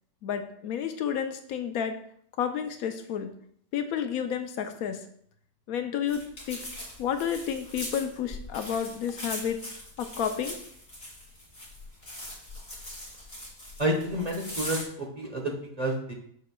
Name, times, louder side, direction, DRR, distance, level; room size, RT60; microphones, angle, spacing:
voice 1, 0.2-2.0 2.4-3.3 3.7-5.0 5.7-6.2 6.5-6.6 7.0-9.6 10.0-10.6, left 8 dB, 75° left, 7 dB, 1.0 m, -30 dB
sound 1, 6.1-14.8, left 1 dB, 30° left, 2.3 m, -41 dB
voice 2, 13.8-16.1, right 1 dB, 30° right, 0 dB, 1.0 m, -30 dB
6.8 x 6.3 x 2.3 m, 0.64 s
omnidirectional pair, 1.6 m